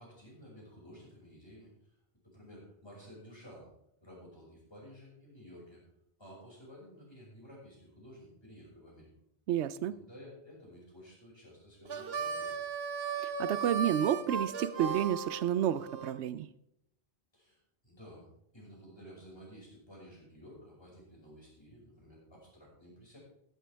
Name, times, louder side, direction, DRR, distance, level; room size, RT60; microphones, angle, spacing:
voice 1, 0.0-1.9 2.2-3.7 4.0-5.8 6.2-9.1 9.9-12.5 17.3-17.6 17.8-18.3 18.5-23.2, equal, 25° left, -4 dB, 5.8 m, -53 dB
voice 2, 9.5-9.9 13.2-16.5, right 10 dB, 85° right, 15 dB, 0.9 m, -30 dB
Harmonica, 11.8-16.1, right 5 dB, 65° right, 1.1 m, -36 dB
15.0 x 11.5 x 3.4 m, 0.76 s
omnidirectional pair, 1.1 m